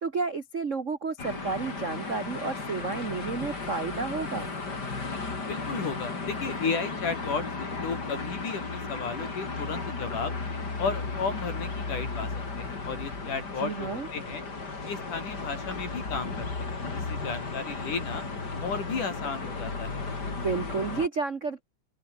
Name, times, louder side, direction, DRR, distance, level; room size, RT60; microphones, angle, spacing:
voice 1, 0.0-4.5 13.6-14.1 20.3-21.6, right 4 dB, 65° right, 0.7 m, -31 dB
sound 1, 1.2-21.1, left 3 dB, 30° left, 4.1 m, -35 dB
voice 2, 5.5-10.3 10.8-14.4 14.8-18.2 18.6-20.1, left 5 dB, 85° left, 6.6 m, -34 dB
open air
omnidirectional pair, 3.5 m